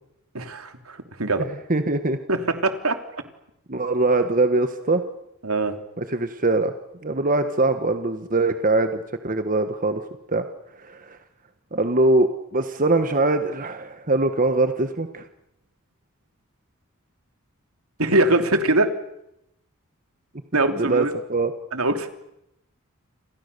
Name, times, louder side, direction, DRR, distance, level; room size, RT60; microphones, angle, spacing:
voice 1, 0.3-1.5 2.3-3.0 5.4-5.7 18.0-18.9 20.5-21.1 21.7-22.1, right 2 dB, 75° right, 7 dB, 3.2 m, -22 dB
voice 2, 1.7-2.2 3.7-5.0 6.0-6.7 7.0-10.0 10.3-10.4 10.8-11.2 11.7-15.2 20.8-21.0 21.3-21.5, right 2 dB, 40° right, 8 dB, 1.5 m, -22 dB
29.5 x 28.0 x 6.9 m, 0.83 s
head